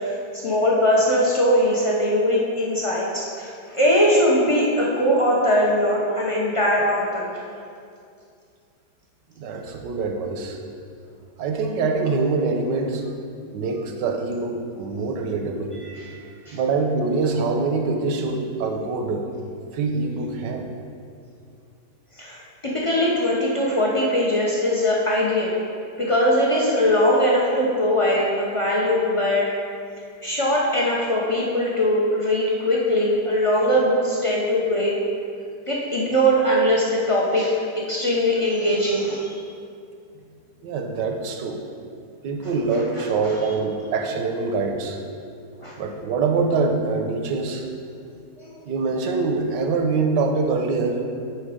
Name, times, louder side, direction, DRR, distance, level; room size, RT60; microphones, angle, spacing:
voice 1, 0.0-7.3 15.8-16.6 22.2-25.6 26.0-29.5 30.2-34.9 35.7-37.6 37.9-39.4 43.2-43.3 45.6-45.7 48.4-48.6, equal, 55° left, -4 dB, 0.3 m, -21 dB
voice 2, 9.4-10.6 11.4-13.0 13.5-15.8 16.5-19.3 19.7-20.7 40.6-41.6 42.2-45.0 45.8-47.7 48.6-51.0, right 4 dB, 85° right, 3 dB, 1.4 m, -24 dB
6.4 x 4.7 x 4.9 m, 2.3 s
omnidirectional pair, 1.8 m